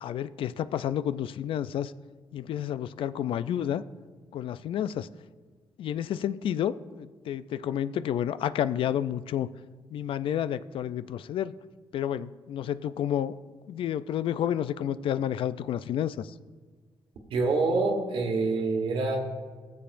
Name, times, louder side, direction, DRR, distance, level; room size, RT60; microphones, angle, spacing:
voice 1, 0.0-1.9 2.3-3.8 4.3-5.1 5.8-9.5 9.9-11.5 11.9-13.3 13.7-16.3, left 10 dB, 75° left, 16 dB, 0.3 m, -30 dB
voice 2, 17.3-19.2, right 3 dB, 80° right, 1 dB, 1.3 m, -26 dB
17.5 x 7.3 x 2.5 m, 1.5 s
cardioid pair, 90°, 9 cm